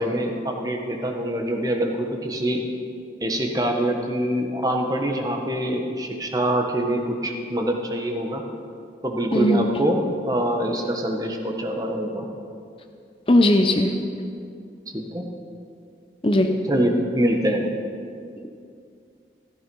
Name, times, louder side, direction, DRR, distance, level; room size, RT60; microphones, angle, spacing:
voice 1, 0.0-2.6 3.2-8.4 9.0-12.3 14.9-15.2 16.5-17.7, right 1 dB, 20° right, 2 dB, 1.5 m, -25 dB
voice 2, 9.3-9.7 13.3-13.9 16.2-16.5, left 1 dB, 30° left, 5 dB, 0.8 m, -18 dB
15.0 x 14.0 x 5.5 m, 2.4 s
head